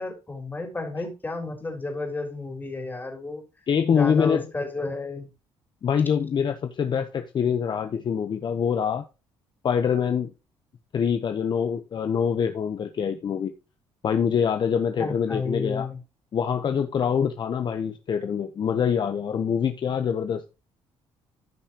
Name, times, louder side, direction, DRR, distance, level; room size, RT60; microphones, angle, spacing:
voice 1, 0.0-3.4 3.9-5.3 15.0-16.0, left 3 dB, 20° left, 3.6 m, -32 dB
voice 2, 3.7-4.4 5.8-9.0 9.6-10.3 10.9-13.5 14.0-15.9 16.3-20.4, left 7 dB, 45° left, 0.9 m, -25 dB
15.0 x 5.6 x 3.0 m
cardioid pair, 100°, 10 cm